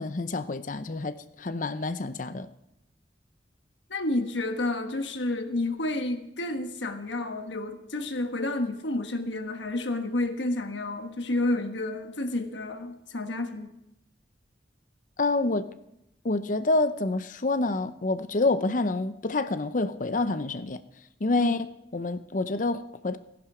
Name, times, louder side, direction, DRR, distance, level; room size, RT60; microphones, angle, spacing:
voice 1, 0.0-2.5 15.2-15.7 16.2-20.8 21.2-23.2, left 2 dB, 45° left, 0.7 m, -27 dB
voice 2, 3.9-13.7 21.4-21.6, left 2 dB, 90° left, 1.4 m, -30 dB
15.0 x 11.0 x 4.9 m
head